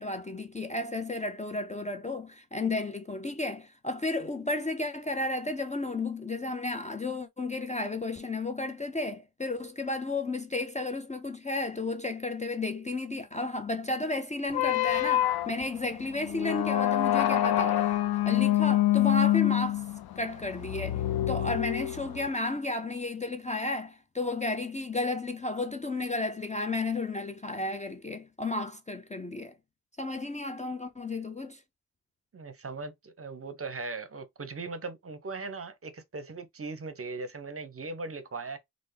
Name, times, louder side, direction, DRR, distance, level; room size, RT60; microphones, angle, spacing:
voice 1, 0.0-18.0 18.2-19.8 20.2-29.5 30.0-31.6, left 2 dB, 20° left, 0.4 m, -33 dB
sound 1, 14.5-22.3, left 13 dB, 75° left, 0.5 m, -26 dB
voice 2, 32.3-38.6, right 3 dB, 35° right, 0.6 m, -39 dB
3.3 x 2.1 x 3.1 m
cardioid pair, 55°, 38 cm